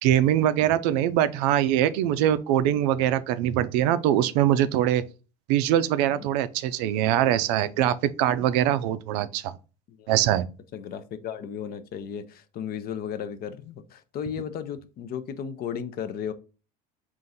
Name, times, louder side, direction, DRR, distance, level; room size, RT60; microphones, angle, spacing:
voice 1, 0.0-5.0 5.5-9.5 10.1-10.5, right 11 dB, 75° right, 0.4 m, -23 dB
voice 2, 10.7-16.3, left 8 dB, 45° left, 0.5 m, -35 dB
3.8 x 2.5 x 4.0 m
supercardioid pair, 100°, 21 cm